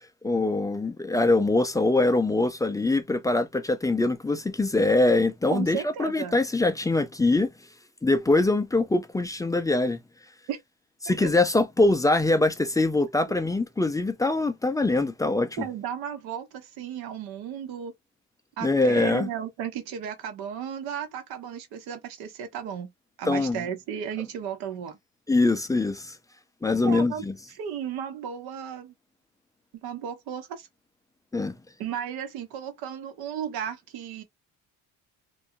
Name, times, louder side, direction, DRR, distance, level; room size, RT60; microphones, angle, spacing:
voice 1, 0.2-7.5 8.0-10.0 11.0-15.7 18.6-19.3 23.3-23.6 25.3-26.2 26.6-27.3 31.3-31.5, left 2 dB, 10° left, 0.3 m, -23 dB
voice 2, 5.5-6.4 10.5-10.6 11.1-11.3 15.6-17.9 18.6-22.9 23.2-25.0 26.7-27.2 27.6-28.9 29.8-30.7 31.8-34.2, right 8 dB, 80° right, 0.9 m, -34 dB
2.5 x 2.2 x 2.7 m
supercardioid pair, 80°, 37 cm